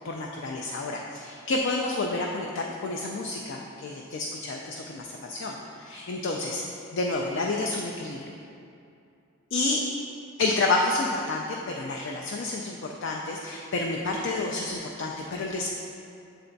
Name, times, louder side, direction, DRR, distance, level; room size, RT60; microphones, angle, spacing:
voice 1, 0.0-6.6 6.9-8.4 9.5-9.8 10.4-15.7, left 2 dB, 55° left, 0 dB, 0.4 m, -29 dB
8.0 x 3.4 x 3.9 m, 2.6 s
head